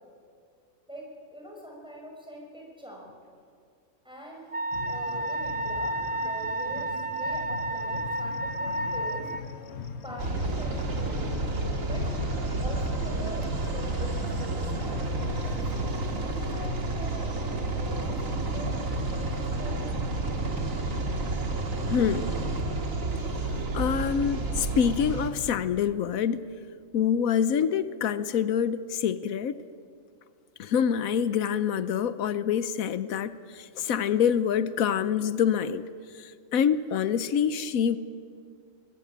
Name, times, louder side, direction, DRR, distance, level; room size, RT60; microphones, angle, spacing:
voice 1, 0.9-3.1 4.0-4.5 4.9-9.3 10.0-11.5 11.9-12.1 12.6-15.0 15.6-20.4, equal, 5° right, -2 dB, 5.7 m, -44 dB
Wind instrument woodwind instrument, 4.5-9.4, right 1 dB, 30° right, 0.8 m, -31 dB
sound 1, 4.7-16.9, left 5 dB, 55° left, 1.3 m, -42 dB
sound 2, 10.2-25.3, right 2 dB, 75° right, 2.3 m, -30 dB
voice 2, 21.9-22.3 23.7-26.5 26.9-29.6 30.6-35.9 36.1-38.0, left 8 dB, 90° left, 14 dB, 1.2 m, -26 dB
24.0 x 19.5 x 8.8 m, 2.2 s
omnidirectional pair, 1.4 m